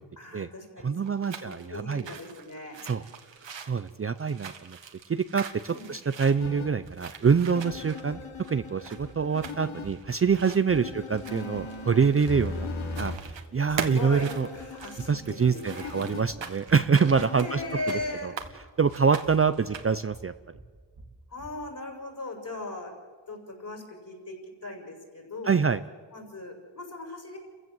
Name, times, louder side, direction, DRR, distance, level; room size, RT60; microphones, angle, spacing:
voice 1, 0.2-2.8 5.7-5.8 13.8-15.9 17.4-18.4 21.3-22.9 23.3-24.3 24.6-25.6 26.1-27.4, left 2 dB, 45° left, 1 dB, 6.8 m, -38 dB
voice 2, 0.8-2.0 2.9-3.0 3.7-4.8 5.1-8.2 8.5-12.7 13.0-13.1 13.5-14.5 15.1-17.6 18.2-18.3 18.8-20.3 25.4-25.8, right 6 dB, 30° right, 11 dB, 0.6 m, -25 dB
sound 1, 1.0-12.6 12.9-13.5 13.8-18.5 18.9-20.1, right 6 dB, 65° right, 1.9 m, -41 dB
sound 2, 6.4-6.7 7.5-9.9 10.7-13.2 13.9-16.2 17.0-18.2, left 4 dB, 80° left, 2.8 m, -39 dB
sound 3, 6.8-21.7, right 2 dB, 45° right, 2.1 m, -51 dB
29.5 x 15.5 x 7.8 m, 1.5 s
wide cardioid pair, 100°, 48 cm